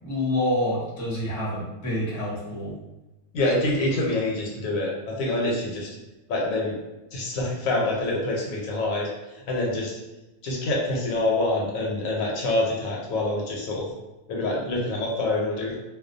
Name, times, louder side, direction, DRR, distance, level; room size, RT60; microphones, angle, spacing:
voice 1, 0.0-2.7, left 1 dB, 20° left, -6 dB, 0.6 m, -27 dB
voice 2, 3.3-5.9 6.3-6.8 7.1-9.1 9.5-9.9 10.4-13.9 14.3-15.8, left 2 dB, 80° left, -2 dB, 1.1 m, -26 dB
2.4 x 2.2 x 2.5 m, 1.0 s
omnidirectional pair, 1.4 m